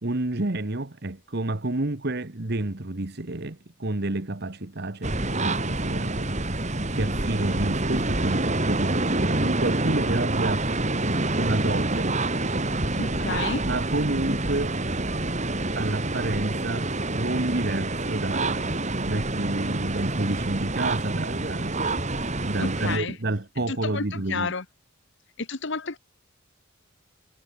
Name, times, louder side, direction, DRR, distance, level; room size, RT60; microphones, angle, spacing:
voice 1, 0.0-10.7 11.4-12.2 13.5-14.8 15.7-22.0 22.4-24.5, right 2 dB, 50° right, 1.4 m, -30 dB
sound 1, 5.0-23.0, right 2 dB, 35° right, 2.8 m, -27 dB
voice 2, 12.9-13.7 22.6-23.2 23.7-24.6 25.4-26.0, left 4 dB, 55° left, 1.3 m, -31 dB
head